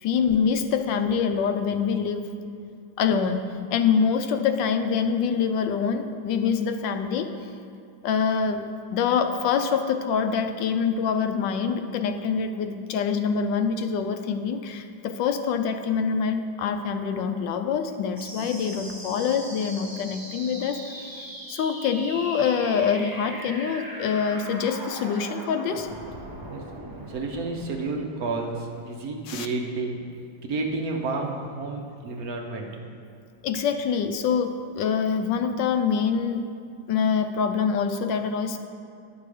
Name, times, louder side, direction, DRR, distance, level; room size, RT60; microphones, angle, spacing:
voice 1, 0.0-2.3 3.0-3.5 3.7-7.3 8.0-8.6 8.9-25.9 29.3-29.5 33.4-36.4 36.9-38.6, left 6 dB, 80° left, 7 dB, 1.2 m, -25 dB
sound 1, 18.2-29.2, right 1 dB, 20° right, 0.5 m, -40 dB
voice 2, 27.1-30.0 30.4-32.7, right 3 dB, 60° right, 1 dB, 1.1 m, -30 dB
10.5 x 6.0 x 4.9 m, 2.3 s
omnidirectional pair, 2.0 m